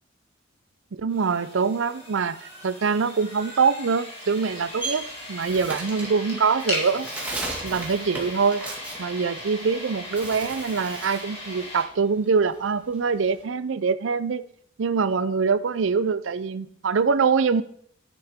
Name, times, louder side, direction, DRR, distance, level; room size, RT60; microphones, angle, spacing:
voice 1, 1.0-7.1 7.6-8.6 9.0-14.4 14.8-17.6, right 5 dB, 70° right, 14 dB, 0.5 m, -24 dB
sound 1, 1.1-11.8, left 1 dB, 30° left, 2.4 m, -37 dB
Bird, 4.3-9.7 10.1-11.3 11.7-13.4, right 2 dB, 5° right, 1.8 m, -36 dB
10.5 x 8.5 x 3.6 m, 0.65 s
head